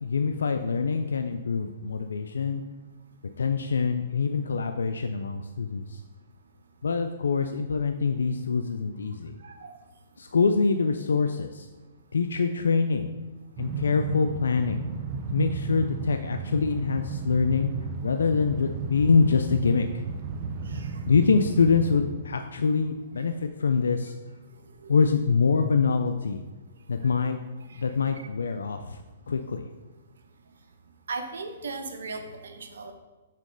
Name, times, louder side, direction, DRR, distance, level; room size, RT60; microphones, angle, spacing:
voice 1, 0.0-2.6 3.4-6.0 6.8-9.4 10.2-11.7 12.1-13.1 13.6-14.8 15.3-17.7 18.0-20.0 21.1-24.1 24.9-26.4 26.9-27.4 27.8-29.0 29.3-29.7, left 5 dB, 85° left, 7 dB, 0.4 m, -25 dB
voice 2, 9.4-9.7 20.6-21.0 24.8-24.9 27.0-27.1 27.7-27.8 31.1-32.9, right 3 dB, 75° right, 6 dB, 0.9 m, -37 dB
Train, 13.6-22.4, right 5 dB, 40° right, 0.6 m, -34 dB
7.4 x 3.0 x 5.4 m, 1.2 s
hypercardioid pair, 140°, 0 cm